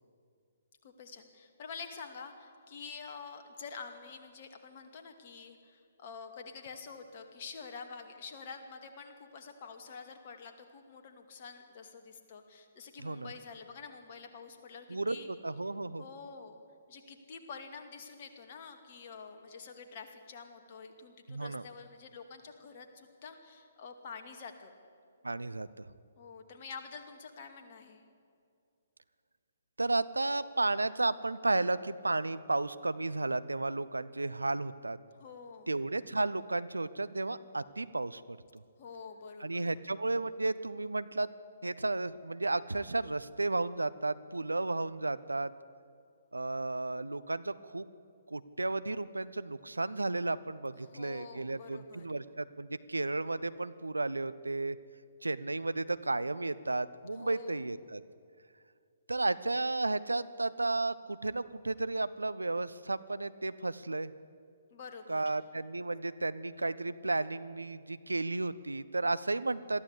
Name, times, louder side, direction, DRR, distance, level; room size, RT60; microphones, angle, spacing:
voice 1, 0.8-15.3 16.0-16.6 16.9-24.7 26.2-28.0 35.2-35.7 38.8-39.8 50.8-52.1 57.1-57.7 64.7-65.4, left 5 dB, 40° left, 5 dB, 2.3 m, -48 dB
voice 2, 14.9-16.0 21.3-21.6 25.2-25.9 29.8-35.0 35.7-38.6 39.4-41.3 41.6-45.5 46.3-47.9 48.3-54.8 55.2-58.0 59.1-64.1 65.1-69.8, right 2 dB, 75° right, 15 dB, 0.7 m, -33 dB
22.0 x 14.0 x 8.4 m, 2.3 s
figure-of-eight pair, 130°, 0 cm